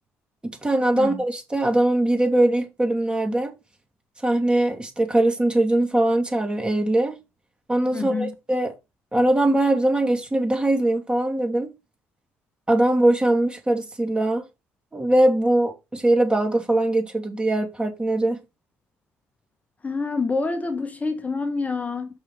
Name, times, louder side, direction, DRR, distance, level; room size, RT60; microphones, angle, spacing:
voice 1, 0.6-3.5 4.2-7.2 7.7-8.7 9.1-11.7 12.7-14.4 14.9-18.4, right 1 dB, 15° right, 2.7 m, -21 dB
voice 2, 7.9-8.3 19.8-22.1, left 3 dB, 25° left, 1.2 m, -27 dB
6.0 x 5.6 x 4.9 m
hypercardioid pair, 55°, 6 cm